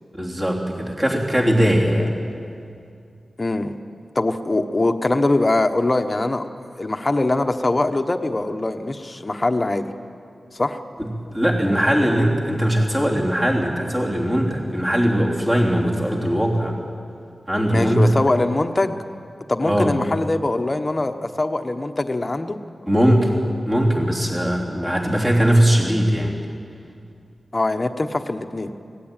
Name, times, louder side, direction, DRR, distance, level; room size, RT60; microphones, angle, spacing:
voice 1, 0.1-2.1 11.3-16.7 17.5-18.1 19.6-19.9 22.9-23.3 23.7-26.3, equal, 20° right, -2 dB, 3.2 m, -20 dB
voice 2, 3.4-3.7 4.1-6.4 6.8-9.9 10.5-10.8 17.7-19.0 19.5-22.6 27.5-28.7, left 2 dB, 30° left, 6 dB, 1.2 m, -22 dB
24.0 x 18.0 x 9.0 m, 2.4 s
wide cardioid pair, 110°, 0 cm